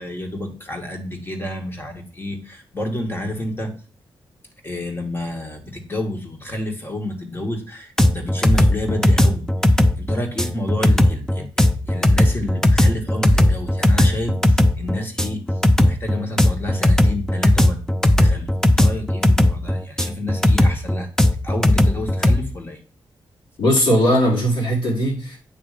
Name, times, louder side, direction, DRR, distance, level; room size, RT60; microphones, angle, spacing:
voice 1, 0.0-3.7 4.6-21.1 21.4-22.8, left 1 dB, 25° left, 2 dB, 2.0 m, -30 dB
sound 1, 8.0-22.4, left 1 dB, 5° left, 0.6 m, -16 dB
voice 2, 23.6-25.4, equal, 70° left, -5 dB, 4.1 m, -18 dB
9.0 x 3.3 x 5.1 m, 0.38 s
cardioid pair, 75°, 9 cm